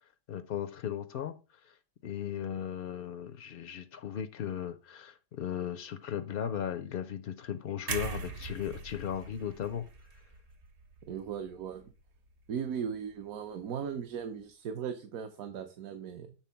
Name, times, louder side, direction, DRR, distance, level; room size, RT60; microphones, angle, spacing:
voice 1, 0.3-1.3 1.6-1.8 2.0-9.9, left 9 dB, 75° left, 0.5 m, -36 dB
sound 1, 7.9-11.9 12.3-12.5, right 5 dB, 55° right, 1.1 m, -41 dB
voice 2, 11.1-11.9 12.5-16.3, right 7 dB, 70° right, 1.2 m, -38 dB
7.3 x 3.5 x 5.6 m
omnidirectional pair, 1.5 m